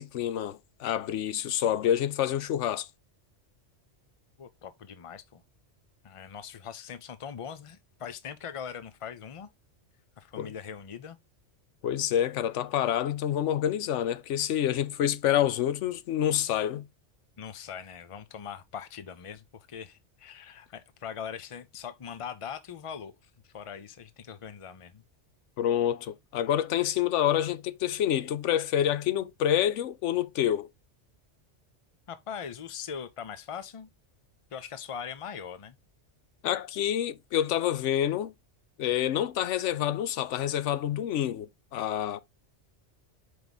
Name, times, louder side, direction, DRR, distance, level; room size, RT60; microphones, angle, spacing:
voice 1, 0.0-2.9 10.4-10.5 11.8-16.8 25.6-30.7 36.4-38.3 38.8-42.2, left 11 dB, 75° left, 0.9 m, -27 dB
voice 2, 4.4-5.4 6.0-9.5 10.2-11.2 17.4-23.2 23.4-25.0 32.1-33.9 34.5-35.7, left 7 dB, 55° left, 0.3 m, -41 dB
5.1 x 4.6 x 3.9 m
omnidirectional pair, 1.2 m